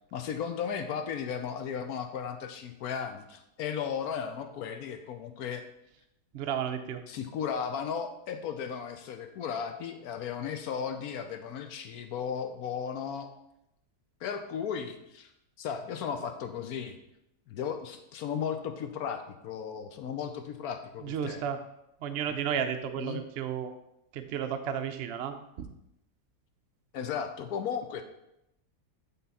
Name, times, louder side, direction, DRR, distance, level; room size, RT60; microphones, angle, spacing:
voice 1, 0.1-5.6 7.1-13.3 14.2-15.3 15.6-17.0 17.5-21.4 23.0-23.2 26.9-28.0, left 7 dB, 70° left, 6 dB, 1.0 m, -35 dB
voice 2, 6.3-7.0 21.0-21.6 22.0-23.7 24.1-25.7, right 8 dB, 65° right, 7 dB, 0.6 m, -33 dB
8.4 x 3.8 x 4.1 m, 0.83 s
omnidirectional pair, 1.8 m